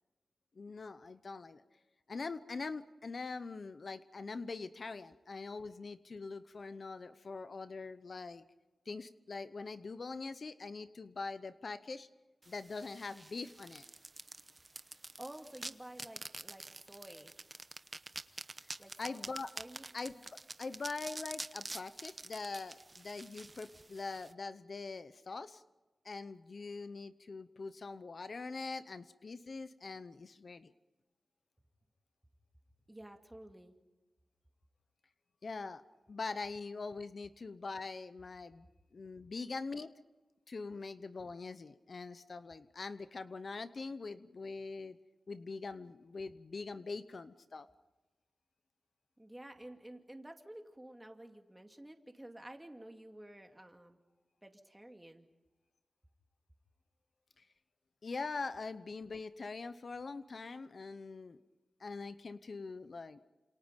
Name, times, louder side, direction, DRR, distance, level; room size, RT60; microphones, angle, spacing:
voice 1, 0.6-1.6 2.1-8.4 8.9-12.1 12.5-13.8 19.0-19.5 19.9-25.6 26.0-30.7 35.4-35.8 36.1-39.9 40.5-45.0 45.3-47.7 57.4-57.5 58.0-61.4 61.8-63.2, left 4 dB, 60° left, 12 dB, 0.8 m, -43 dB
sound 1, 12.4-24.3, right 2 dB, 35° right, 0.9 m, -48 dB
voice 2, 15.2-17.3 18.8-19.2 19.5-19.8 32.9-33.7 49.2-54.0 54.4-55.3, right 1 dB, 15° right, 4 dB, 2.4 m, -51 dB
29.0 x 27.5 x 5.3 m, 1.1 s
wide cardioid pair, 85°, 0 cm